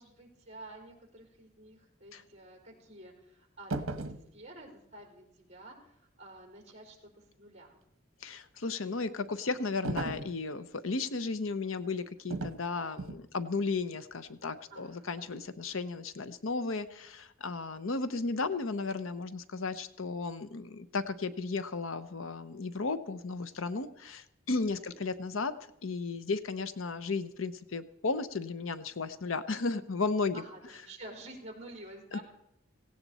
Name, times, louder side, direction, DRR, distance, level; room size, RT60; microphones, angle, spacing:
voice 1, 0.0-7.8 14.7-15.3 24.8-24.9 30.3-32.2, right 1 dB, 30° right, 0 dB, 4.2 m, -50 dB
sound 1, 3.7-4.3 9.8-10.4 12.3-12.6 13.0-13.3, right 2 dB, 80° right, 1.0 m, -35 dB
voice 2, 8.2-25.5 25.8-30.4 32.1-32.2, left 4 dB, 70° left, 12 dB, 0.8 m, -34 dB
17.0 x 17.0 x 4.1 m, 0.81 s
head